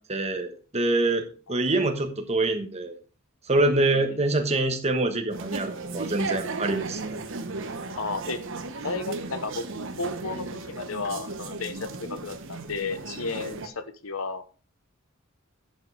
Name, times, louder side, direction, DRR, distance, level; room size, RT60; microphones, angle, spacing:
voice 1, 0.1-3.0 3.5-7.0, right 2 dB, 30° right, 5 dB, 1.3 m, -25 dB
voice 2, 3.9-4.2 8.0-8.4 8.8-14.4, left 4 dB, 70° left, 11 dB, 0.9 m, -33 dB
sound 1, 5.3-13.7, right 3 dB, 65° right, 1.1 m, -35 dB
10.5 x 7.4 x 3.4 m, 0.38 s
head